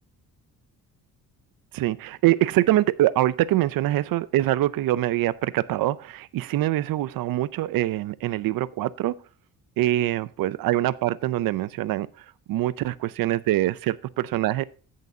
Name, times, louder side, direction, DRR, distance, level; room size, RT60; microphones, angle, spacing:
voice 1, 1.7-9.1 9.8-12.1 12.5-14.6, right 14 dB, 80° right, 0.5 m, -24 dB
15.0 x 6.6 x 2.7 m
wide cardioid pair, 180°, 34 cm